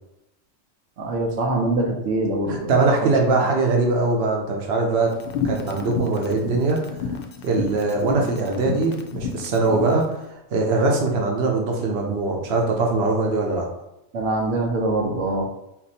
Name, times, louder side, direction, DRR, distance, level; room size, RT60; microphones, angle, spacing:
voice 1, 1.0-2.7 3.4-3.5 14.1-15.4, right 2 dB, 85° right, 1 dB, 1.1 m, -24 dB
voice 2, 2.5-5.2 5.4-6.8 7.4-10.1 10.5-13.7, right 3 dB, 60° right, 1 dB, 1.0 m, -21 dB
sound 1, 5.2-10.0, left 6 dB, 60° left, 0.6 m, -30 dB
4.3 x 2.7 x 4.1 m, 0.87 s
omnidirectional pair, 1.2 m